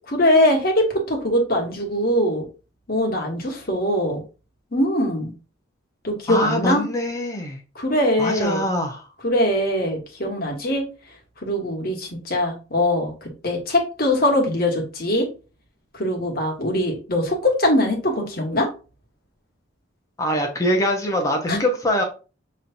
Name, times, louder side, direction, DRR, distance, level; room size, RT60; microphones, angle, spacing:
voice 1, 0.1-2.5 2.9-4.2 4.7-5.3 6.0-6.8 7.7-8.6 9.2-10.8 11.4-15.3 15.9-18.7 21.5-21.6, left 1 dB, 50° left, 1.3 m, -22 dB
voice 2, 6.3-7.6 8.2-9.1 20.2-22.0, equal, 15° left, 0.8 m, -23 dB
5.5 x 3.2 x 2.6 m
head